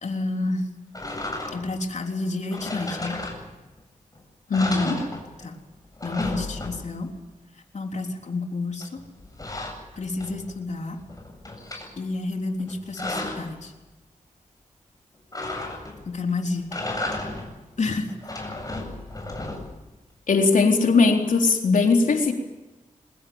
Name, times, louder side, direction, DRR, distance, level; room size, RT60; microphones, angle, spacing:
voice 1, 0.0-0.7 1.5-3.2 5.4-5.5 6.0-7.1 7.7-9.0 10.0-11.0 12.0-13.7 16.1-16.7 17.8-18.1, left 3 dB, 60° left, 3 dB, 3.8 m, -29 dB
sound 1, 0.9-1.8 2.5-3.8 4.1-4.2 4.5-5.6 5.8-7.1 8.8-10.6 11.0-11.9 12.6-13.5 15.3-16.1 16.6-17.6 18.1-19.9, left 2 dB, 25° left, 7.9 m, -34 dB
voice 2, 4.5-5.0 20.3-22.3, left 4 dB, 80° left, 3 dB, 3.9 m, -19 dB
23.5 x 21.0 x 8.9 m, 1.1 s
cardioid pair, 60°, 14 cm